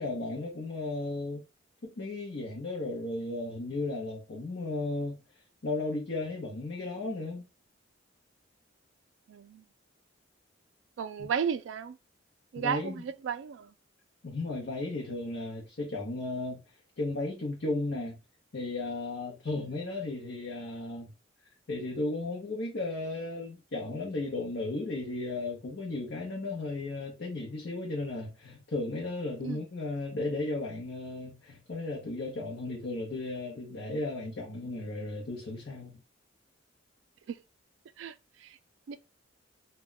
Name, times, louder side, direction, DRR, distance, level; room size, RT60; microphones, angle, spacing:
voice 1, 0.0-1.4 1.8-5.2 5.6-7.5 12.6-12.9 14.2-16.6 17.0-18.2 18.5-21.1 21.7-36.0, left 2 dB, 65° left, 0.7 m, -35 dB
voice 2, 9.3-9.6 11.0-12.0 12.5-13.7 19.6-19.7 29.4-29.6 37.3-37.4 38.0-38.6 38.9-39.0, right 7 dB, 70° right, 0.3 m, -34 dB
2.2 x 2.2 x 3.6 m
head